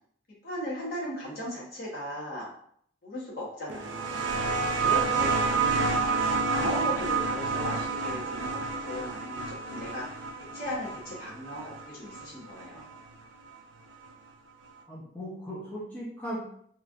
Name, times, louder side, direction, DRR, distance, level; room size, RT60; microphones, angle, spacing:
voice 1, 0.4-2.5 3.0-4.2 4.6-6.0 6.4-10.2 10.5-12.8, left 1 dB, 50° left, -5 dB, 1.1 m, -37 dB
sound 1, 3.7-13.0 14.1-14.2, right 4 dB, 70° right, 0.4 m, -29 dB
voice 2, 14.9-16.4, equal, 10° left, -8 dB, 0.6 m, -38 dB
3.0 x 2.5 x 2.4 m, 0.65 s
head